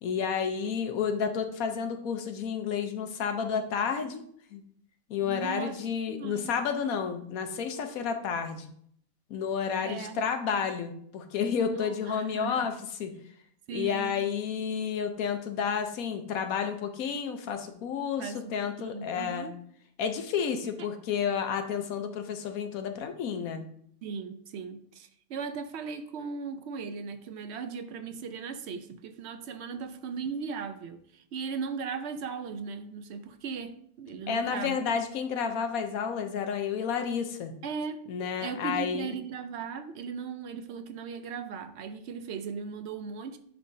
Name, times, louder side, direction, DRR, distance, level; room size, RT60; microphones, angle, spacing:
voice 1, 0.0-4.2 4.5-4.6 5.1-8.7 9.3-12.7 13.0-13.1 13.7-19.5 20.0-23.7 34.3-37.5 38.1-39.2, left 7 dB, 85° left, 1.2 m, -31 dB
voice 2, 5.2-5.8 6.1-6.5 9.8-10.3 11.6-12.7 13.7-14.1 18.2-18.5 18.8-19.6 20.8-20.9 24.0-34.8 37.6-38.1 38.4-43.4, right 5 dB, 65° right, 0.7 m, -37 dB
10.0 x 3.4 x 2.7 m
omnidirectional pair, 1.4 m